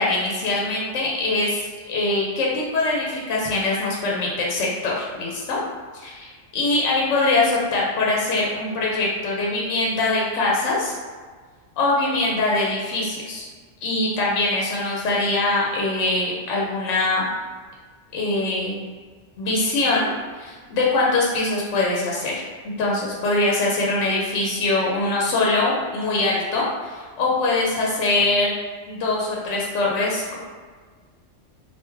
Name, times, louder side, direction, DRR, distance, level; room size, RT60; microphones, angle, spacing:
voice 1, 0.0-5.6 5.9-11.0 11.8-13.5 13.8-17.3 18.1-18.8 19.4-20.1 20.3-28.6 28.9-30.4, left 2 dB, 75° left, -4 dB, 1.0 m, -23 dB
3.1 x 2.5 x 3.4 m, 1.5 s
omnidirectional pair, 1.3 m